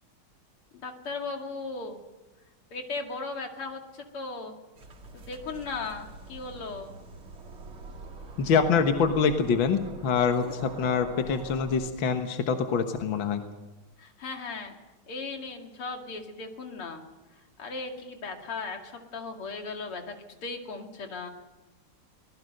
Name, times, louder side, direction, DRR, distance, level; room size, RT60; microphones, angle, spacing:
voice 1, 0.7-2.0 2.7-4.6 5.1-6.9 14.0-14.8 15.1-17.0 17.4-20.1 20.4-21.3, left 3 dB, 85° left, 3 dB, 3.2 m, -37 dB
sound 1, 4.7-11.9, right 3 dB, 75° right, 3.2 m, -45 dB
voice 2, 8.4-13.4, left 6 dB, 65° left, 6 dB, 2.0 m, -25 dB
25.0 x 19.5 x 6.6 m, 1.1 s
omnidirectional pair, 2.4 m